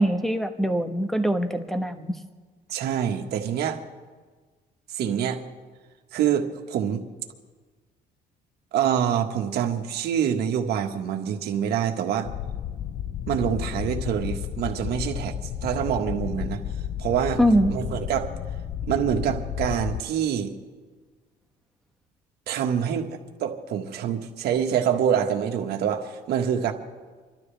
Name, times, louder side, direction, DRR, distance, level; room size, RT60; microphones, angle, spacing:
voice 1, 0.0-2.1 17.4-17.7, equal, ahead, 7 dB, 1.2 m, -23 dB
voice 2, 2.7-3.8 4.9-5.4 6.1-7.0 8.7-12.3 13.3-16.6 17.0-17.4 17.7-18.3 18.9-20.5 22.5-26.7, right 8 dB, 70° right, 4 dB, 1.6 m, -26 dB
sound 1, 12.2-20.0, left 10 dB, 45° left, 0.6 m, -32 dB
30.0 x 12.5 x 3.4 m, 1.4 s
cardioid pair, 110°, 17 cm